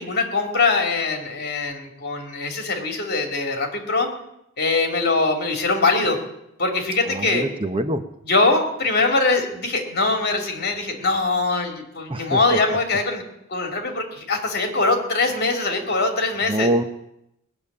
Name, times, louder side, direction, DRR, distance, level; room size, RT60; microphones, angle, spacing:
voice 1, 0.0-4.1 4.6-6.2 6.6-7.5 8.2-13.2 13.5-16.7, left 3 dB, 50° left, 4 dB, 2.8 m, -22 dB
voice 2, 7.1-8.1 12.1-12.4 16.5-16.8, right 1 dB, 25° right, 9 dB, 0.8 m, -24 dB
19.5 x 7.2 x 9.7 m, 0.82 s
head